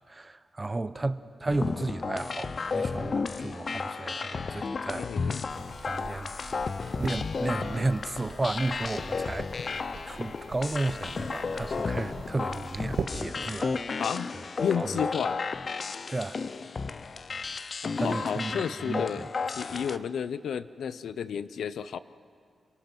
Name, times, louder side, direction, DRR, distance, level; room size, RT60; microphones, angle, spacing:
voice 1, 0.1-5.4 5.8-6.7 7.0-9.7 10.1-14.1 14.8-15.0 16.1-16.4 18.0-18.6 18.8-19.3 19.7-20.0, right 2 dB, 20° right, 14 dB, 0.7 m, -33 dB
sound 1, 1.5-20.0, left 4 dB, 45° left, 0.6 m, -33 dB
voice 2, 5.0-5.4 14.0-14.3 14.6-15.4 17.8-19.2 19.6-22.0, left 7 dB, 90° left, 15 dB, 0.6 m, -32 dB
sound 2, 5.5-13.0, right 5 dB, 70° right, 1.5 m, -42 dB
27.5 x 23.5 x 6.2 m, 2.1 s
wide cardioid pair, 120°, 0 cm